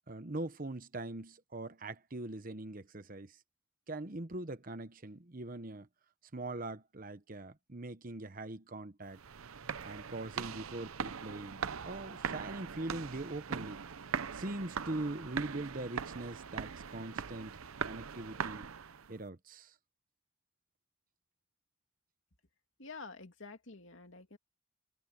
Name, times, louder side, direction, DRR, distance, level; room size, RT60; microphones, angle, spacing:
voice 1, 0.1-3.4 3.9-5.9 6.3-9.2 9.8-13.8 14.3-17.5 17.8-18.7 19.1-19.7, right 2 dB, 40° right, 1.0 m, -42 dB
sound 1, 9.1-19.1, right 6 dB, 85° right, 0.7 m, -41 dB
voice 2, 22.8-24.4, left 4 dB, 65° left, 2.7 m, -49 dB
head